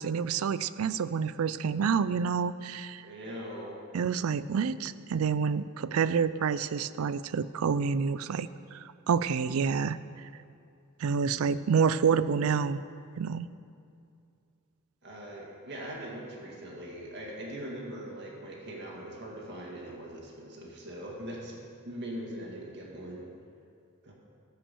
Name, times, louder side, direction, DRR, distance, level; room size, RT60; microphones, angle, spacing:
voice 1, 0.0-3.0 3.9-10.0 11.0-12.8 13.2-13.5, right 6 dB, 80° right, 15 dB, 0.4 m, -28 dB
voice 2, 3.0-3.8 15.0-21.6 21.8-23.3 24.0-24.1, right 1 dB, 55° right, -2 dB, 2.0 m, -41 dB
14.0 x 5.7 x 6.9 m, 2.4 s
head